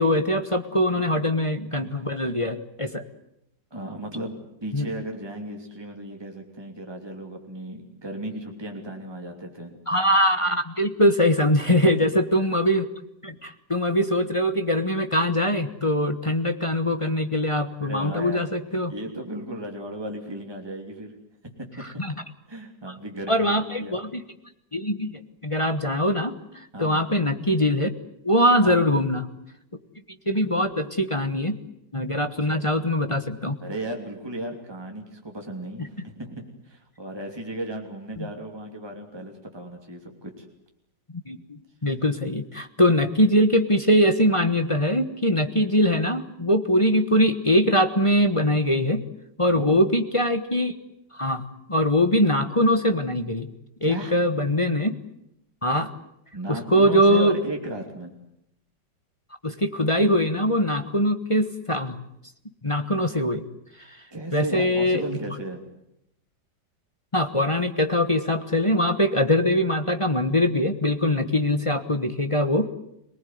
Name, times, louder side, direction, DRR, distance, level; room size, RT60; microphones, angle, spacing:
voice 1, 0.0-3.0 4.7-4.9 9.9-12.9 13.2-18.9 22.0-22.1 23.3-24.2 24.7-26.3 26.8-27.9 28.2-29.3 30.3-31.6 31.9-33.6 41.3-49.0 49.4-50.7 51.1-51.4 51.7-53.5 53.8-55.0 55.6-55.9 56.5-57.4 59.4-62.0 62.6-63.4 63.9-64.0 64.3-65.0 67.1-72.7, equal, 20° left, 7 dB, 1.2 m, -22 dB
voice 2, 3.7-9.8 11.7-12.1 13.3-13.4 17.8-18.5 18.9-21.1 21.6-21.7 22.5-24.0 26.7-27.0 28.6-28.9 32.4-32.7 33.6-40.5 49.5-49.8 53.8-54.2 56.3-58.1 64.1-65.6, right 1 dB, 15° right, 2 dB, 3.1 m, -35 dB
26.5 x 19.5 x 9.5 m, 0.81 s
omnidirectional pair, 1.9 m